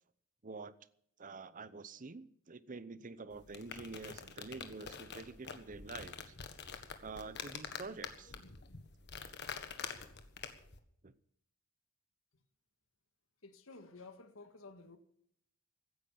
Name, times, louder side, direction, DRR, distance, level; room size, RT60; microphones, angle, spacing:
voice 1, 0.4-0.7 1.2-6.3 7.0-8.3 11.0-11.1, right 3 dB, 40° right, 0.8 m, -47 dB
sound 1, 3.3-10.8, left 6 dB, 55° left, 1.5 m, -47 dB
voice 2, 13.4-15.0, left 3 dB, 70° left, 1.8 m, -53 dB
16.0 x 9.8 x 7.1 m
head